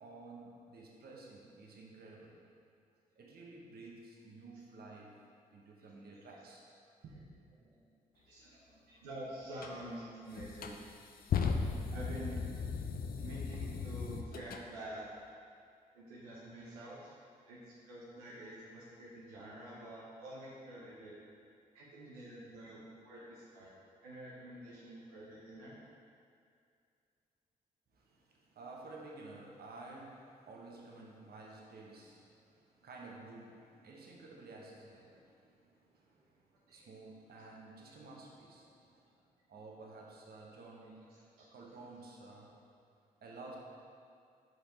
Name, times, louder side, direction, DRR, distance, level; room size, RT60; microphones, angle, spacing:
voice 1, 0.0-2.3 3.2-5.1 5.5-6.6 7.0-7.3 27.9-39.2 39.5-41.0 41.4-42.5 43.2-43.6, right 3 dB, 55° right, -2 dB, 1.1 m, -52 dB
voice 2, 8.2-10.8 11.1-11.6 11.9-12.4 13.2-15.0 15.9-17.1 17.5-21.2 21.7-23.7 24.0-25.8 30.4-30.5 31.4-31.5 33.8-34.0 36.7-36.9 37.8-37.9 41.1-41.4, right 1 dB, 90° right, -6 dB, 0.8 m, -48 dB
sound 1, 9.6-9.7 10.3-14.6, left 5 dB, 50° left, 0.5 m, -37 dB
5.2 x 4.7 x 4.4 m, 2.3 s
hypercardioid pair, 45°, 19 cm